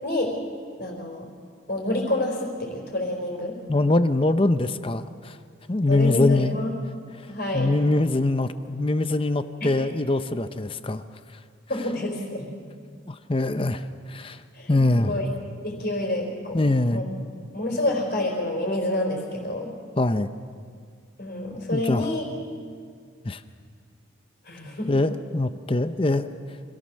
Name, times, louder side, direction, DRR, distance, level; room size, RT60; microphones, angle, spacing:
voice 1, 0.0-0.4 0.8-1.3 1.7-3.6 5.9-6.7 7.3-7.7 9.6-9.7 11.7-12.5 14.5-15.3 15.6-17.0 17.5-19.7 21.2-22.2 24.4-25.0, left 1 dB, 50° left, -2 dB, 4.4 m, -28 dB
voice 2, 3.7-5.4 5.7-6.6 7.2-7.3 7.5-11.0 13.1-13.8 14.1-14.4 14.7-15.1 16.5-17.0 20.0-20.3 21.7-22.1 23.2-23.4 24.9-26.3, left 2 dB, 25° left, 10 dB, 0.6 m, -23 dB
26.5 x 16.5 x 6.4 m, 2.1 s
head